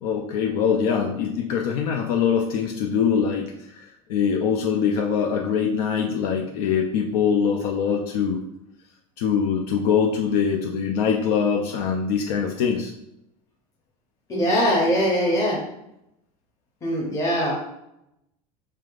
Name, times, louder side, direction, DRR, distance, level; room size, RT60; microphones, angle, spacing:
voice 1, 0.0-8.4 9.2-12.9, left 7 dB, 80° left, 2 dB, 0.5 m, -23 dB
voice 2, 14.3-15.6 16.8-17.5, equal, 15° left, -5 dB, 0.7 m, -21 dB
3.8 x 3.4 x 2.4 m, 0.83 s
supercardioid pair, 130°, 19 cm